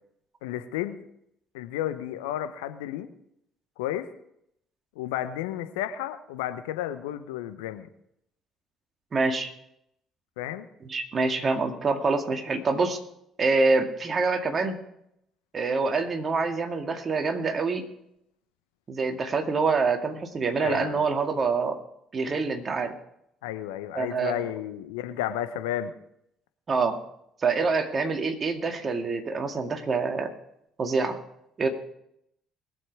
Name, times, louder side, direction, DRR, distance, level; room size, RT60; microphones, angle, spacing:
voice 1, 0.4-1.0 1.5-3.1 3.8-4.1 5.0-7.9 10.4-10.7 20.6-21.1 23.4-25.9, left 12 dB, 75° left, 10 dB, 0.8 m, -32 dB
voice 2, 9.1-9.5 10.8-13.0 13.4-14.8 15.5-17.8 18.9-21.8 22.1-22.9 23.9-24.5 26.7-27.0 27.4-30.3 30.8-31.2 31.6-31.7, right 4 dB, 40° right, 5 dB, 2.1 m, -26 dB
21.0 x 7.6 x 4.7 m, 0.76 s
figure-of-eight pair, 50°, 0 cm